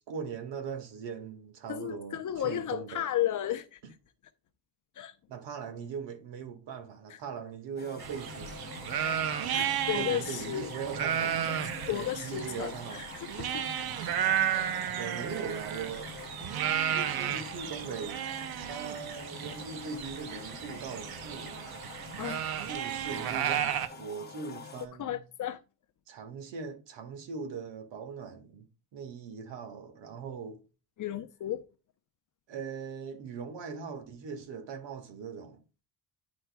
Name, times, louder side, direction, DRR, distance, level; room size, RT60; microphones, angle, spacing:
voice 1, 0.1-3.0 5.3-8.5 9.9-11.5 11.8-13.1 14.9-16.1 16.9-18.2 18.7-21.6 22.7-25.2 26.1-30.6 32.5-35.6, right 6 dB, 70° right, 1.7 m, -40 dB
voice 2, 1.7-3.8 5.0-5.1 9.5-10.7 11.9-13.6 14.5-14.8 22.2-22.4 25.0-25.6 31.0-31.6, left 11 dB, 45° left, 0.7 m, -34 dB
sound 1, 7.8-24.9, left 5 dB, 20° left, 0.9 m, -46 dB
sound 2, 8.0-23.9, right 9 dB, 55° right, 0.7 m, -33 dB
10.5 x 4.4 x 2.2 m
cardioid pair, 145°, 44 cm